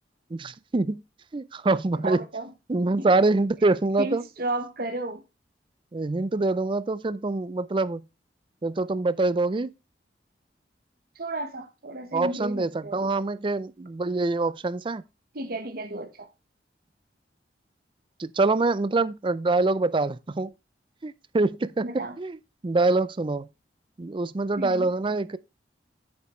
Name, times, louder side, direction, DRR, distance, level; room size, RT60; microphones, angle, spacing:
voice 1, 0.3-1.0 1.3-2.3 2.7-4.2 5.9-8.0 8.6-9.7 12.1-15.0 18.2-20.5 21.0-22.4 22.6-23.5 24.0-25.4, right 3 dB, 30° right, 0.4 m, -25 dB
voice 2, 2.0-2.5 3.0-3.1 4.0-5.2 11.2-13.1 15.3-16.3 21.8-22.2 24.6-24.9, right 2 dB, 55° right, 1.1 m, -33 dB
8.8 x 6.9 x 3.1 m
head